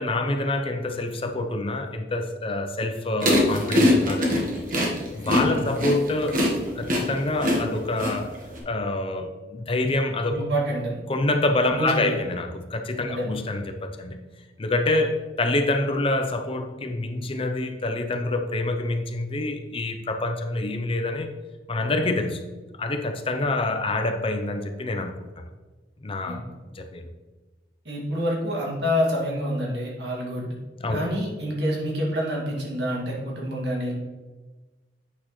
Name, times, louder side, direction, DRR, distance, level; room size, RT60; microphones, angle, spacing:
voice 1, 0.0-4.5 5.1-6.5 6.8-8.4 8.7-10.4 11.1-14.2 14.6-21.3 21.7-22.4 22.8-25.3 26.0-26.5 26.7-27.0 30.8-31.0, left 2 dB, 30° left, 6 dB, 0.6 m, -26 dB
sound 1, 3.2-8.6, left 1 dB, 50° right, 1.4 m, -22 dB
voice 2, 10.3-11.0 11.7-12.2 13.1-13.3 26.3-26.4 27.8-30.5 30.9-33.9, equal, 75° right, -3 dB, 2.2 m, -27 dB
8.5 x 6.2 x 3.1 m, 1.3 s
head